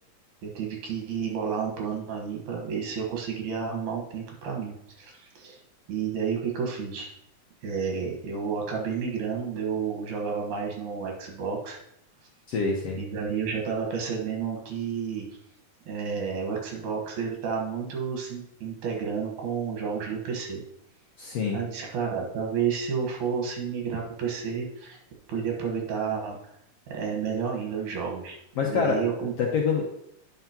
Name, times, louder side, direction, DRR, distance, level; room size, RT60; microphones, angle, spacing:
voice 1, 0.4-5.6 5.9-7.1 7.6-11.8 12.9-15.3 15.9-20.6 21.5-25.0 25.3-26.4 26.9-29.3, right 6 dB, 70° right, 0 dB, 2.7 m, -31 dB
voice 2, 12.5-13.0 21.2-21.6 28.6-29.9, left 5 dB, 70° left, -1 dB, 1.5 m, -26 dB
9.9 x 5.8 x 2.9 m, 0.78 s
omnidirectional pair, 3.7 m